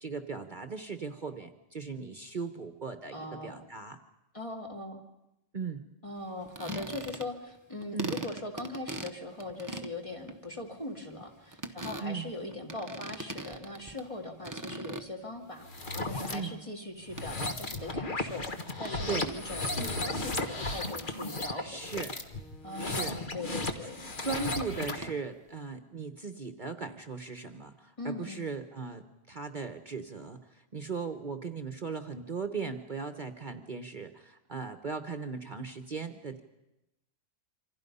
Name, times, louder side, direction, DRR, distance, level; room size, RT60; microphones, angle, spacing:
voice 1, 0.0-4.0 5.5-5.9 7.9-8.2 12.0-12.3 16.3-16.6 19.0-19.3 21.6-22.1 22.8-23.1 24.2-29.0 29.3-36.4, right 4 dB, 40° right, 8 dB, 1.1 m, -38 dB
voice 2, 3.1-3.6 4.3-5.0 6.0-15.7 16.0-22.0 22.6-24.1 28.0-28.4, left 2 dB, 25° left, 1 dB, 2.7 m, -40 dB
sound 1, 6.4-7.5 7.8-14.2 14.4-15.5 15.8-16.3 17.2-17.3 18.5-18.6 18.9-19.0 19.3-19.4 24.6-25.1, right 2 dB, 15° right, 1.0 m, -40 dB
sound 2, 15.6-16.4 17.0-25.1, left 2 dB, 40° left, 1.7 m, -35 dB
27.5 x 25.5 x 5.5 m, 0.91 s
omnidirectional pair, 1.3 m